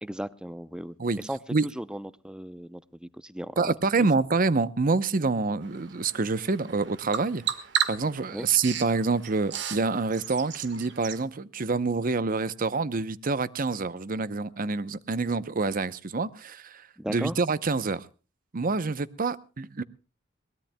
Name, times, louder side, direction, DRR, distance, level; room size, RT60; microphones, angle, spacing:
voice 1, 0.0-3.7 8.3-8.5 17.0-17.3, equal, 5° right, 16 dB, 0.6 m, -36 dB
voice 2, 3.6-7.4 7.9-18.1 18.5-19.8, right 4 dB, 45° right, 16 dB, 0.8 m, -27 dB
Bird vocalization bird call bird song, 5.6-11.2, right 9 dB, 65° right, 1.6 m, -35 dB
22.0 x 19.0 x 2.2 m, 0.34 s
head